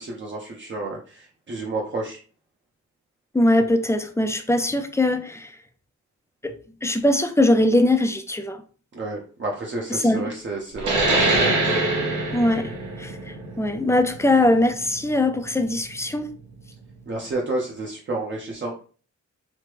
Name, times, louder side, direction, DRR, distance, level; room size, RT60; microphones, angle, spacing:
voice 1, 0.0-2.2 8.9-11.6 17.1-18.7, right 2 dB, 40° right, 0.6 m, -30 dB
voice 2, 3.3-5.6 6.4-8.6 9.9-10.3 12.3-12.7 13.0-16.3, left 1 dB, 10° left, 0.3 m, -21 dB
sound 1, 10.8-15.9, right 2 dB, 80° right, 1.0 m, -24 dB
3.0 x 2.1 x 3.3 m
wide cardioid pair, 110°, 30 cm